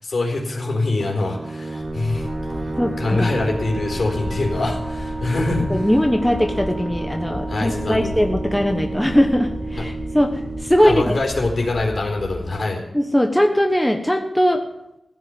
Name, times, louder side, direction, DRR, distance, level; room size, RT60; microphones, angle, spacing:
voice 1, 0.0-2.3 3.0-5.9 7.5-8.2 9.8-9.9 10.8-12.8, left 2 dB, 65° left, 0 dB, 4.2 m, -24 dB
sound 1, 1.0-12.3, right 3 dB, 30° right, 1.1 m, -32 dB
sound 2, 1.8-12.5, left 1 dB, 40° left, 3.1 m, -33 dB
voice 2, 2.8-3.3 5.7-11.1 12.9-14.6, equal, 5° left, 3 dB, 1.2 m, -20 dB
16.0 x 6.5 x 9.5 m, 0.87 s
wide cardioid pair, 110°, 0 cm